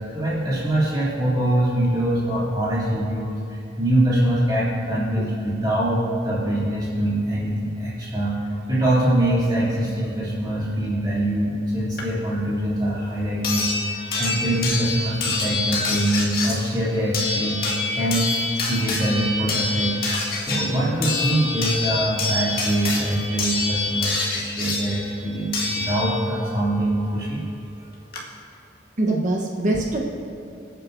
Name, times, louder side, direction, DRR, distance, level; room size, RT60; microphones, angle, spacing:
voice 1, 0.1-8.4 8.7-18.3 18.7-19.9 20.5-27.4, right 1 dB, 20° right, -8 dB, 2.8 m, -23 dB
sound 1, 12.0-12.1 13.4-26.4 27.7-27.8 28.1-28.2, left 3 dB, 50° left, 1.9 m, -26 dB
voice 2, 29.0-30.0, right 2 dB, 40° right, -1 dB, 1.1 m, -23 dB
26.5 x 9.1 x 2.7 m, 2.6 s
head